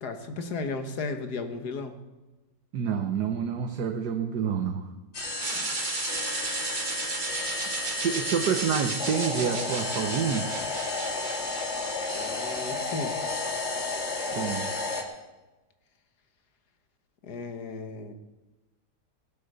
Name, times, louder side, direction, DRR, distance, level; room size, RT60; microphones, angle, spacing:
voice 1, 0.0-2.0 5.5-5.7 12.1-13.2 17.2-18.1, left 3 dB, 75° left, 7 dB, 1.9 m, -35 dB
voice 2, 2.7-4.8 7.9-10.5 14.3-14.7, right 7 dB, 80° right, 4 dB, 1.6 m, -28 dB
sound 1, 5.1-15.0, left 3 dB, 45° left, 2.1 m, -32 dB
sound 2, 5.4-13.4, right 3 dB, 30° right, 1.3 m, -35 dB
17.5 x 7.8 x 6.8 m, 1.1 s
omnidirectional pair, 1.7 m